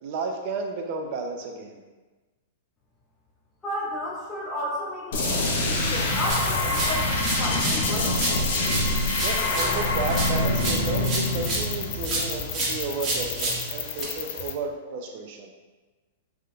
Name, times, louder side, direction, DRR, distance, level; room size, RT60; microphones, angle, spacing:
voice 1, 0.0-1.8 9.2-15.5, right 4 dB, 50° right, 3 dB, 0.5 m, -32 dB
voice 2, 3.6-8.2, left 1 dB, 15° left, -6 dB, 0.8 m, -33 dB
sound 1, 5.1-12.7, left 2 dB, 70° left, 0.8 m, -25 dB
sound 2, 6.3-7.8 8.1-11.7 12.0-14.0, right 2 dB, 30° right, 1.1 m, -30 dB
sound 3, 7.8-14.5, left 8 dB, 55° left, 0.4 m, -35 dB
3.5 x 2.2 x 3.8 m, 1.2 s
hypercardioid pair, 135°, 0 cm